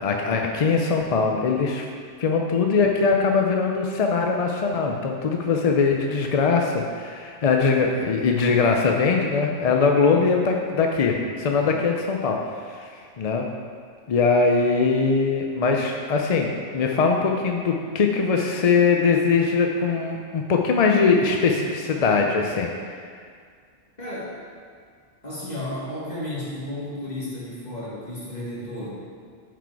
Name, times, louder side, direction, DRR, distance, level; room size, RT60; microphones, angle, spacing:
voice 1, 0.0-1.9 2.2-12.4 12.6-13.4 14.1-16.5 16.7-23.1, left 4 dB, 55° left, 2 dB, 0.4 m, -21 dB
voice 2, 24.0-24.3 25.2-29.2, left 1 dB, 35° left, -7 dB, 2.0 m, -33 dB
8.9 x 4.1 x 4.6 m, 2.1 s
omnidirectional pair, 1.2 m